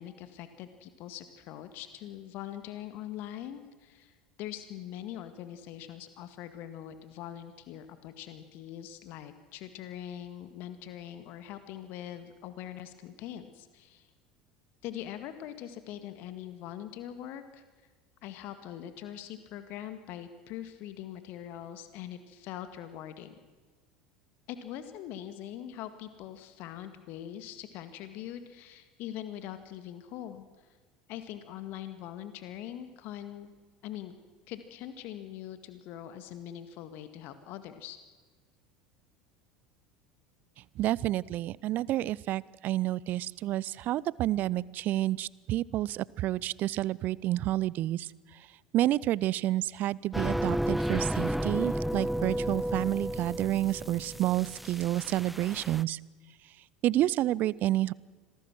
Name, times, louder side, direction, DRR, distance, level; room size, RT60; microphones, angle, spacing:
voice 1, 0.0-14.1 14.8-17.6 18.2-23.3 24.5-30.4 31.1-33.5 33.8-34.1 34.5-38.0 42.7-42.8, left 11 dB, 55° left, 10 dB, 1.9 m, -42 dB
voice 2, 40.8-48.1 48.7-56.0 56.8-57.9, right 14 dB, 50° right, 23 dB, 0.6 m, -29 dB
sound 1, 50.1-55.8, equal, ahead, 0.6 m, -32 dB
26.5 x 19.0 x 6.2 m, 1.4 s
figure-of-eight pair, 70°, 4 cm